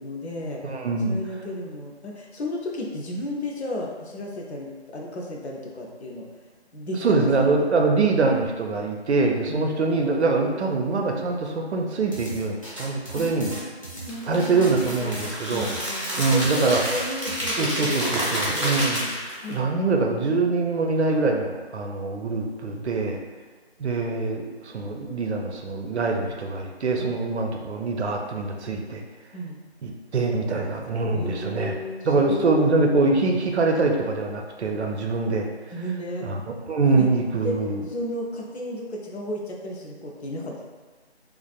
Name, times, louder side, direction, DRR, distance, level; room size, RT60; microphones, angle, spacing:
voice 1, 0.0-0.6 1.0-6.3 6.7-7.6 9.5-9.7 13.1-18.8 19.4-19.7 27.0-27.1 29.3-29.6 31.1-32.5 35.7-36.3 36.9-37.1 37.4-37.6 37.9-40.6, left 1 dB, 75° left, -1 dB, 0.6 m, -34 dB
voice 2, 0.6-1.2 7.0-13.6 14.3-15.7 16.2-16.8 17.6-19.0 19.5-23.2 23.8-29.0 29.8-31.7 32.0-35.5 36.2-36.4 36.7-37.8, right 3 dB, 80° right, 2 dB, 0.5 m, -24 dB
sound 1, 12.1-18.8, right 1 dB, 30° left, 0.4 m, -38 dB
sound 2, 14.1-19.5, equal, 30° right, 0.5 m, -29 dB
2.4 x 2.2 x 2.4 m, 1.3 s
figure-of-eight pair, 165°, 33 cm